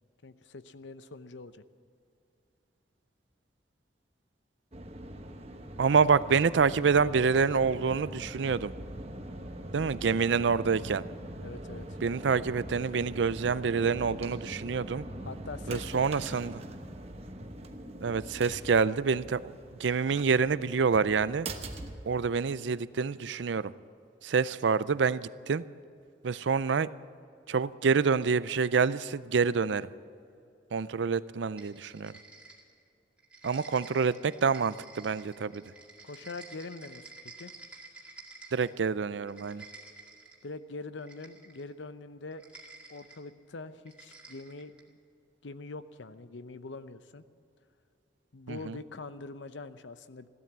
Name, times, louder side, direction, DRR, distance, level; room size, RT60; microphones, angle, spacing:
voice 1, 0.2-1.6 11.4-12.0 14.9-16.3 36.0-37.5 40.4-42.4 42.9-45.0 45.4-47.2 48.3-50.3, left 3 dB, 80° left, 13 dB, 0.7 m, -44 dB
sound 1, 4.7-22.8, right 1 dB, 35° right, 1.1 m, -43 dB
voice 2, 5.8-8.7 9.7-11.0 12.0-15.0 15.7-16.6 18.0-19.4 19.8-21.5 22.1-23.7 24.2-25.6 26.2-26.9 27.5-29.9 30.7-32.1 33.4-35.6 38.5-39.6 48.5-48.8, right 5 dB, 80° right, 17 dB, 0.5 m, -27 dB
sound 2, 31.6-32.9 33.2-38.8 39.2-40.4 41.0-41.7 42.3-43.2 43.9-44.9, right 3 dB, 5° right, 2.1 m, -51 dB
15.5 x 12.5 x 7.4 m, 2.5 s
head